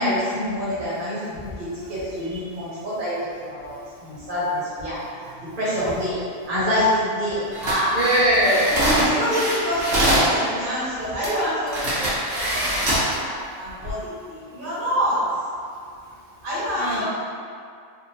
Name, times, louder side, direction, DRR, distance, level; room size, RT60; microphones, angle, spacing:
voice 1, 0.0-5.0 5.6-6.2 6.5-7.9 9.0-12.0 12.3-14.0 14.3-15.2 16.4-17.0, equal, 45° right, -10 dB, 1.3 m, -26 dB
sound 1, 7.5-10.3 11.2-11.3 11.7-13.1 13.7-13.9, right 1 dB, 80° right, 1.3 m, -23 dB
voice 2, 7.9-9.4 16.7-17.0, right 1 dB, 60° right, -8 dB, 0.6 m, -21 dB
3.6 x 2.5 x 2.8 m, 2.3 s
omnidirectional pair, 1.3 m